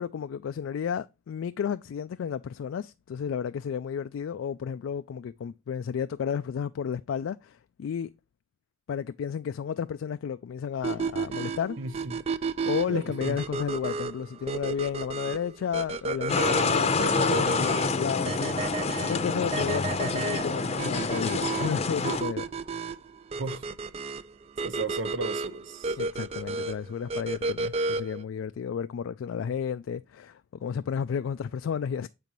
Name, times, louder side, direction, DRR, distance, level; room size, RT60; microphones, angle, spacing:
voice 1, 0.0-8.1 8.9-11.8 12.7-22.5 26.0-32.1, left 7 dB, 85° left, 0.3 m, -32 dB
sound 1, 10.8-28.2, right 4 dB, 30° right, 0.3 m, -33 dB
voice 2, 11.8-12.2 12.9-13.4 23.4-23.6 24.6-26.0, right 3 dB, 80° right, 0.8 m, -35 dB
sound 2, 16.3-22.2, left 4 dB, 30° left, 0.6 m, -27 dB
7.4 x 5.3 x 3.0 m
head